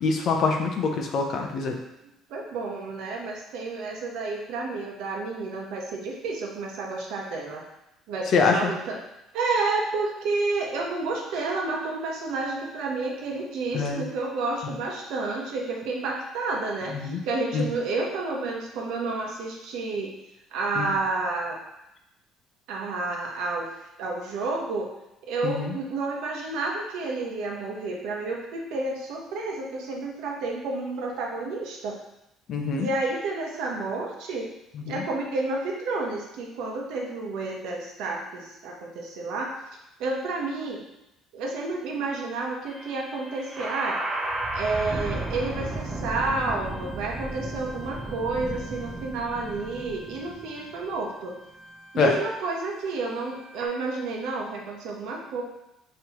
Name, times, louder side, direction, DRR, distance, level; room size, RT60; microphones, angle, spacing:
voice 1, 0.0-1.7 8.3-8.7 13.7-14.0 16.9-17.2 17.5-17.7 20.8-20.9 25.4-25.7 32.5-32.9 34.9-35.0 51.9-52.1, left 4 dB, 40° left, 2 dB, 0.6 m, -24 dB
voice 2, 2.3-7.6 8.1-9.0 9.3-20.2 20.5-21.6 22.7-23.7 24.0-24.9 25.2-32.0 32.7-34.5 34.9-39.5 40.0-40.8 41.3-44.0 44.5-51.3 51.9-55.4, right 3 dB, 70° right, -1 dB, 1.0 m, -30 dB
sound 1, 42.7-53.7, right 2 dB, 15° right, 0.5 m, -35 dB
5.5 x 3.1 x 2.9 m, 0.88 s
cardioid pair, 175°, 0 cm